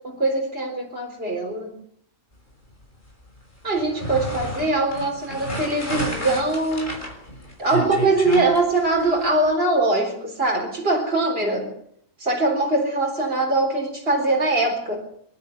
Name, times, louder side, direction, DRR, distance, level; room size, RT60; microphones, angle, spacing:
voice 1, 0.0-1.8 3.6-6.9 7.6-11.7 12.2-15.1, right 2 dB, 45° right, 0 dB, 4.2 m, -22 dB
sound 1, 3.8-9.3, equal, 35° left, 6.1 m, -31 dB
27.0 x 12.5 x 9.3 m, 0.68 s
omnidirectional pair, 1.4 m